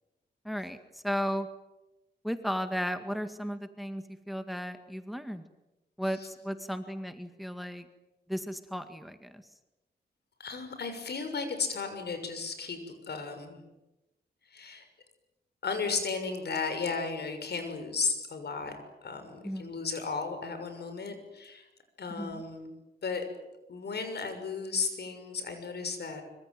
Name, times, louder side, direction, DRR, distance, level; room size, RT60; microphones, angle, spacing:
voice 1, 0.4-1.5 2.2-5.4 6.0-7.9 8.3-9.4 19.4-19.7 22.1-22.4, equal, ahead, 9 dB, 2.0 m, -35 dB
voice 2, 10.4-13.6 14.5-14.8 15.6-21.7 22.0-22.7 23.0-23.2 23.7-26.2, left 4 dB, 70° left, 7 dB, 6.6 m, -34 dB
25.5 x 25.0 x 9.4 m, 0.98 s
wide cardioid pair, 110°, 18 cm